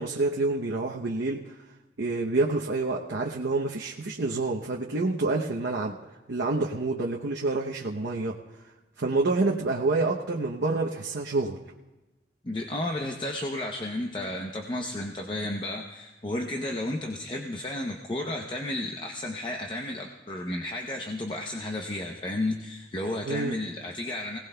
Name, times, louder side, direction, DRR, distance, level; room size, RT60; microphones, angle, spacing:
voice 1, 0.0-1.4 2.0-6.0 6.3-8.4 9.0-11.6 23.2-23.6, right 3 dB, 85° right, -1 dB, 0.8 m, -27 dB
voice 2, 12.4-24.4, left 1 dB, 25° left, 2 dB, 0.7 m, -32 dB
24.0 x 17.5 x 2.2 m, 1.1 s
head